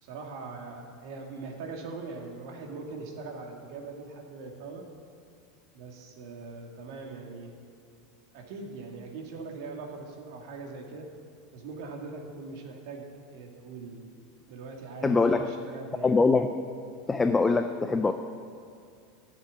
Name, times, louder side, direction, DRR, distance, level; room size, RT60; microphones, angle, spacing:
voice 1, 0.0-4.8 5.7-7.6 8.3-11.1 11.5-14.2 14.5-16.2, right 3 dB, 60° right, 2 dB, 2.2 m, -41 dB
voice 2, 15.0-15.5 16.0-16.5 17.1-18.1, left 3 dB, 10° left, 7 dB, 0.4 m, -23 dB
12.5 x 7.4 x 9.4 m, 2.3 s
supercardioid pair, 175°, 2 cm